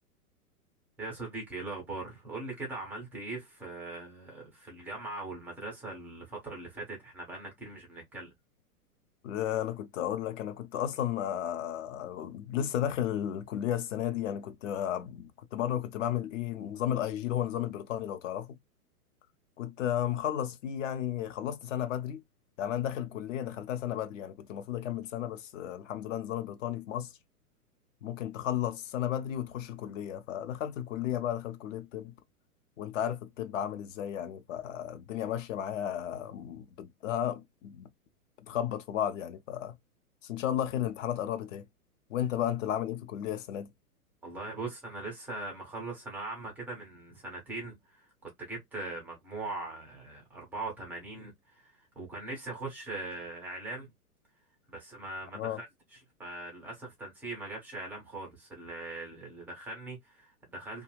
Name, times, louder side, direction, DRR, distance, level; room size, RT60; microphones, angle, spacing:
voice 1, 1.0-8.3 44.2-53.9 54.7-55.7 56.2-60.8, right 2 dB, 5° right, 0.4 m, -41 dB
voice 2, 9.2-18.6 19.6-22.2 22.6-27.1 28.0-32.1 32.8-37.9 38.5-39.8 40.2-41.6 42.1-43.7 55.3-55.6, left 10 dB, 55° left, 0.7 m, -33 dB
2.4 x 2.3 x 3.0 m
hypercardioid pair, 115°, 46 cm